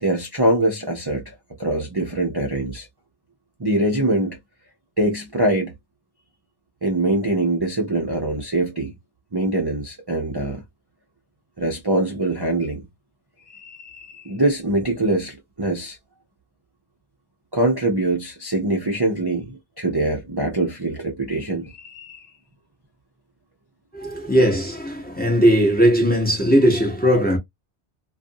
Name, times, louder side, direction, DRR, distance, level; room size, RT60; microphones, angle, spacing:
voice 1, 0.0-2.9 3.6-4.4 5.0-5.7 6.8-8.9 9.3-10.6 11.6-12.8 13.4-16.0 17.5-22.2, right 2 dB, 25° right, 0.6 m, -23 dB
voice 2, 23.9-27.4, equal, 10° left, 0.7 m, -18 dB
2.5 x 2.4 x 2.6 m
omnidirectional pair, 1.2 m